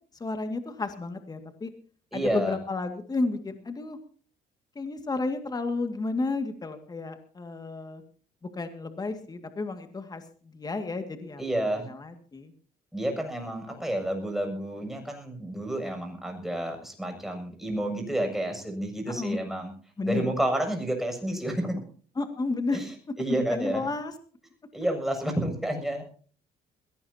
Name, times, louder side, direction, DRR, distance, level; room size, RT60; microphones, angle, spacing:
voice 1, 0.2-1.7 2.1-4.0 4.8-8.0 8.5-10.2 10.5-11.6 11.9-12.5 13.7-13.8 19.1-19.4 20.0-20.3 22.2-22.8 23.5-24.1, left 3 dB, 25° left, 7 dB, 2.1 m, -32 dB
voice 2, 2.1-2.6 11.4-11.9 12.9-19.7 20.0-21.8 22.7-22.8 23.2-23.9 24.7-26.0, right 1 dB, ahead, 3 dB, 7.1 m, -30 dB
21.5 x 17.5 x 2.9 m, 0.43 s
cardioid pair, 110°, 17 cm